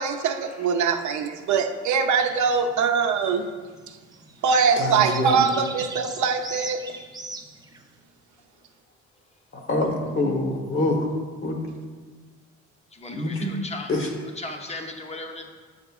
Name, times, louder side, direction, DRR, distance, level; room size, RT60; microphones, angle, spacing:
voice 1, 0.0-3.5 4.4-6.9, right 5 dB, 75° right, 5 dB, 0.6 m, -22 dB
sound 1, 2.2-7.9, right 3 dB, 15° right, 0.5 m, -40 dB
voice 2, 4.8-5.4 9.5-11.1 11.4-11.6 13.1-13.5 13.9-14.1, left 1 dB, 45° left, 1 dB, 1.1 m, -25 dB
voice 3, 12.9-13.9 14.4-15.5, left 2 dB, 20° left, 3 dB, 0.7 m, -37 dB
7.6 x 5.6 x 2.4 m, 1.4 s
cardioid pair, 90°, 30 cm